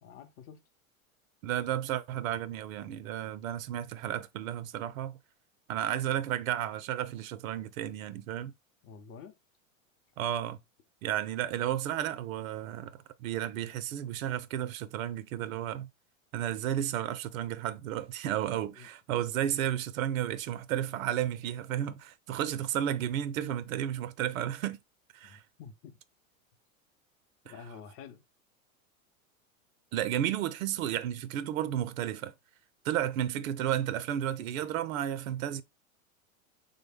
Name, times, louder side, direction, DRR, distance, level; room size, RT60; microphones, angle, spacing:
voice 1, 0.0-0.6 8.8-9.3 18.7-18.9 25.2-26.0 27.4-28.2, left 6 dB, 35° left, 0.6 m, -49 dB
voice 2, 1.4-5.2 5.7-8.5 10.2-10.6 11.0-15.9 16.3-24.8 25.1-25.4 27.5-27.6 29.9-32.3 32.8-35.6, right 11 dB, 75° right, 0.5 m, -32 dB
3.4 x 2.1 x 3.3 m
hypercardioid pair, 100°, 41 cm